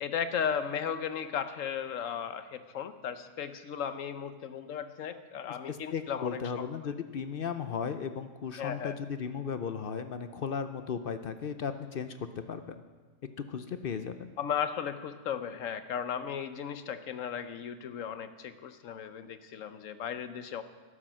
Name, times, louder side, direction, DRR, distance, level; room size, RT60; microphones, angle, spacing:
voice 1, 0.0-6.7 8.6-9.0 14.4-20.6, left 8 dB, 80° left, 11 dB, 1.2 m, -35 dB
voice 2, 5.5-12.1 12.5-12.8 13.5-14.3, left 6 dB, 55° left, 10 dB, 0.7 m, -36 dB
13.5 x 11.0 x 6.2 m, 1.4 s
omnidirectional pair, 1.3 m